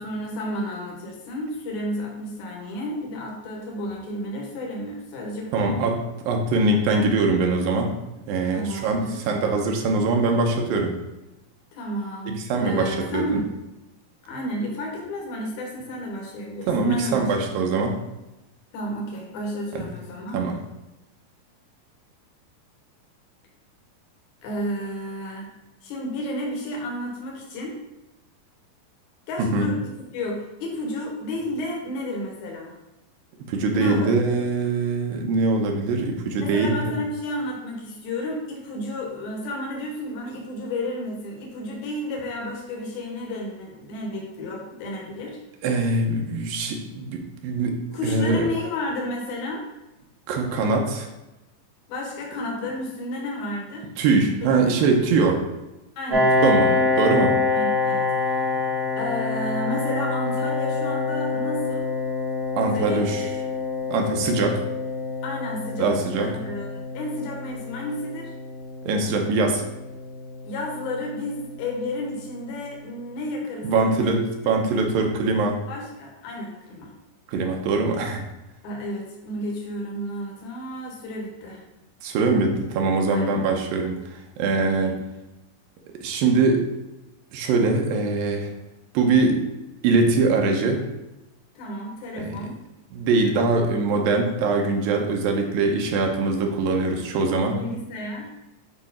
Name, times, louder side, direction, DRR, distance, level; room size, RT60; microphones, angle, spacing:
voice 1, 0.0-5.8 8.5-9.2 11.7-13.5 14.3-17.8 18.7-20.4 24.4-25.5 25.8-27.8 29.3-29.8 30.1-32.8 33.7-34.3 36.4-45.4 47.9-49.6 51.9-53.9 54.4-54.5 56.0-56.3 56.7-56.9 57.5-61.9 62.6-63.3 65.2-68.3 70.4-74.3 75.7-76.9 78.6-81.6 83.1-83.4 84.6-85.0 91.6-92.6 97.5-98.3, left 1 dB, 60° left, -1 dB, 2.4 m, -32 dB
voice 2, 5.5-7.9 8.3-10.9 12.3-13.4 16.7-18.0 19.8-19.9 20.3-20.6 29.4-29.7 33.5-36.8 45.6-48.5 50.3-51.1 54.0-55.4 56.4-57.4 62.6-63.2 63.9-64.6 65.8-66.3 68.9-69.6 73.6-75.6 77.3-78.2 82.0-84.0 84.4-84.9 86.0-86.7 87.3-88.5 88.9-89.4 89.8-90.8 92.2-92.4 92.9-97.6, right 3 dB, 80° right, 2 dB, 2.5 m, -22 dB
Piano, 56.1-71.5, left 3 dB, 55° right, 2.8 m, -26 dB
8.6 x 3.1 x 4.2 m, 0.98 s
omnidirectional pair, 4.2 m